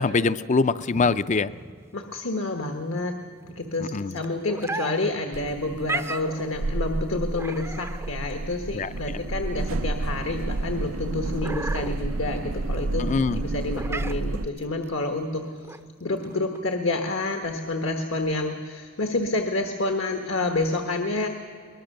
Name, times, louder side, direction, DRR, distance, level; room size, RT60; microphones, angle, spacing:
voice 1, 0.0-1.5 3.8-4.1 8.7-8.9 13.0-13.4, left 4 dB, 35° left, 14 dB, 0.5 m, -23 dB
sound 1, 0.8-16.7, right 2 dB, 15° right, 0.5 m, -38 dB
voice 2, 1.9-3.2 3.5-13.0 13.4-15.5 16.0-21.3, left 2 dB, 75° left, 5 dB, 1.3 m, -28 dB
sound 2, 5.3-14.5, right 2 dB, 85° right, 0.6 m, -30 dB
22.5 x 19.5 x 6.6 m, 2.1 s
head